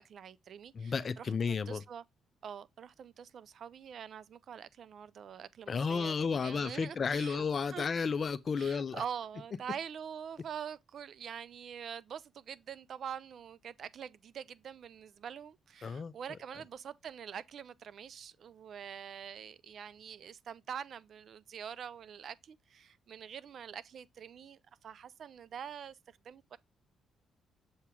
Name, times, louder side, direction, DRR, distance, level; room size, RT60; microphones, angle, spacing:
voice 1, 0.0-2.0 2.4-7.8 8.6-26.6, right 8 dB, 60° right, 0.3 m, -45 dB
voice 2, 0.7-1.8 5.7-9.0 15.8-16.1, left 5 dB, 45° left, 0.5 m, -32 dB
7.0 x 2.9 x 4.8 m
cardioid pair, 90°, 0 cm